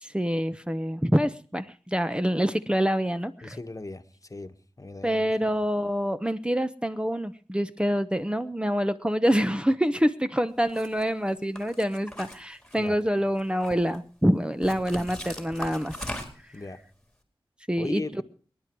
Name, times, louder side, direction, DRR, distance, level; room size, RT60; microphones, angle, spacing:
voice 1, 0.0-3.6 5.0-15.9 17.7-18.2, equal, 10° right, 1.0 m, -26 dB
voice 2, 3.4-5.5 12.8-13.0 16.5-16.8 17.8-18.2, left 2 dB, 40° left, 1.5 m, -38 dB
sound 1, 10.7-11.0 11.6-13.0 13.4-14.0 14.6-16.6, left 1 dB, 5° left, 4.3 m, -39 dB
25.0 x 11.0 x 4.7 m
cardioid pair, 45°, 9 cm